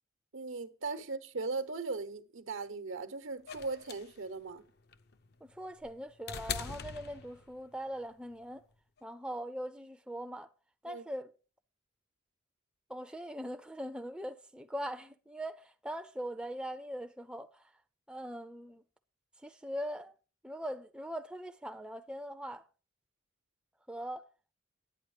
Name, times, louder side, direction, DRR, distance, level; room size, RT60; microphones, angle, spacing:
voice 1, 0.3-4.6 10.9-11.0, right 3 dB, 75° right, 1.0 m, -38 dB
sound 1, 3.5-7.7 9.0-9.1, left 6 dB, 50° left, 0.6 m, -42 dB
voice 2, 5.4-8.6 9.0-10.5 10.8-11.3 12.9-17.7 18.1-18.8 19.4-20.1 20.4-22.6 23.9-24.3, equal, 5° right, 0.5 m, -41 dB
10.5 x 8.6 x 4.9 m
head